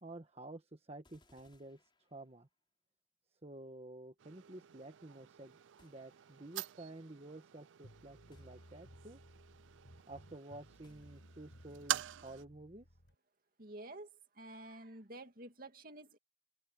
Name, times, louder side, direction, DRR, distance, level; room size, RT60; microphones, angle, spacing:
voice 1, 0.0-2.5 3.4-9.2 10.1-12.9, right 2 dB, 35° right, 1.4 m, -51 dB
sound 1, 1.0-2.7 5.8-6.7 8.3-9.2 10.8-11.7, left 2 dB, 25° left, 4.4 m, -73 dB
sound 2, 4.2-12.4, right 12 dB, 85° right, 0.4 m, -46 dB
sound 3, 7.8-13.2, equal, 80° left, 6.1 m, -59 dB
voice 2, 13.6-14.1 14.3-16.2, right 1 dB, 50° right, 2.3 m, -50 dB
open air
head